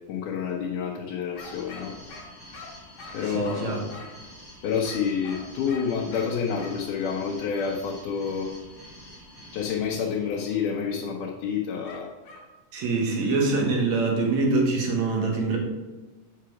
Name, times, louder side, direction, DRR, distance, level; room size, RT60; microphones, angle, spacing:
voice 1, 0.1-1.9 3.1-3.9 4.6-8.5 9.5-12.1, left 6 dB, 90° left, -2 dB, 2.4 m, -28 dB
sound 1, 1.3-4.3 4.8-6.8 7.5-7.8 11.8-12.5, left 3 dB, 70° left, 2.5 m, -45 dB
sound 2, 1.4-10.7, equal, 15° left, 2.3 m, -48 dB
voice 2, 3.2-3.8 12.7-15.6, right 3 dB, 65° right, 0 dB, 2.6 m, -24 dB
7.3 x 5.9 x 4.7 m, 1.2 s
omnidirectional pair, 3.5 m